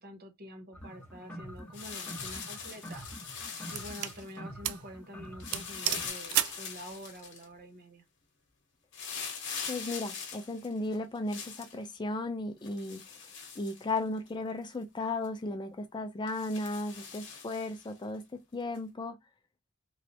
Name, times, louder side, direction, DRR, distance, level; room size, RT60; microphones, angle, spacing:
voice 1, 0.0-3.0 3.7-8.0, equal, 45° right, 0.8 m, -47 dB
sound 1, 0.7-6.1, equal, 5° left, 0.8 m, -46 dB
sound 2, 1.7-4.4 5.4-7.4 8.9-11.7 12.6-14.3 14.7-14.8 15.2-15.4 16.3-17.9 18.7-18.8, left 6 dB, 55° left, 1.0 m, -42 dB
sound 3, 1.9-2.3 3.0-4.2 4.6-4.9 5.2-5.3 5.5-6.7, right 13 dB, 80° right, 0.4 m, -33 dB
voice 2, 9.7-18.2 18.5-19.2, left 2 dB, 20° left, 0.4 m, -35 dB
3.2 x 2.8 x 2.7 m
head